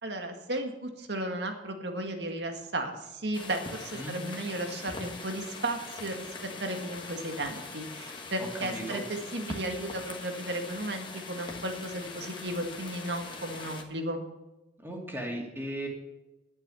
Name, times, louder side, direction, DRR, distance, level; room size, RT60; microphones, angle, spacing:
voice 1, 0.0-6.3 6.6-14.2, right 1 dB, 75° right, 4 dB, 1.9 m, -34 dB
sound 1, 3.3-13.8, left 3 dB, 25° left, 1.5 m, -42 dB
voice 2, 8.4-9.0 14.8-15.9, right 1 dB, 15° right, -1 dB, 2.6 m, -37 dB
11.0 x 9.4 x 6.9 m, 1.0 s
head